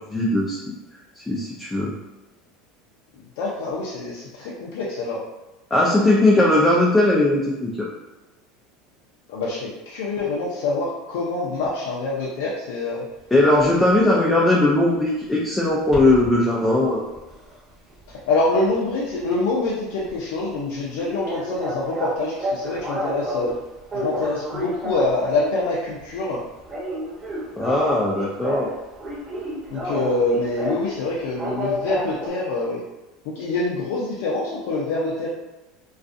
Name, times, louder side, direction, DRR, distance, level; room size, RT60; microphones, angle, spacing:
voice 1, 0.1-0.7 1.2-2.0 5.7-7.9 13.3-17.0 27.6-28.7, left 1 dB, 10° left, -4 dB, 0.4 m, -19 dB
voice 2, 3.4-5.2 9.3-13.0 14.0-14.1 18.3-23.5 23.9-26.4 29.7-32.8 33.4-35.3, left 2 dB, 75° left, -5 dB, 0.4 m, -25 dB
sound 1, 13.6-13.8 15.9-16.3 16.8-18.9 19.2-19.4 19.7-19.8 20.1-20.2 20.4-20.5 21.0-23.5 23.9-25.6 26.0-26.3 26.6-28.7 29.0-30.9 31.4-32.3, equal, 25° right, 0.9 m, -30 dB
2.3 x 2.3 x 2.5 m, 1.1 s
supercardioid pair, 100°, 0 cm